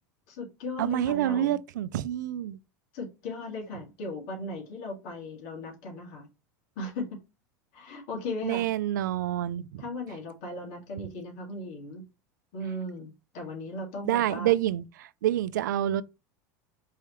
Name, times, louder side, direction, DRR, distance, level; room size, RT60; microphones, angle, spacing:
voice 1, 0.3-1.6 2.9-6.3 6.8-7.2 7.7-8.7 9.8-12.0 12.5-14.5, left 2 dB, 65° left, 2.0 m, -37 dB
voice 2, 0.8-2.6 8.4-9.8 14.0-16.0, right 12 dB, 90° right, 0.4 m, -27 dB
4.6 x 3.2 x 3.0 m
supercardioid pair, 105°, 10 cm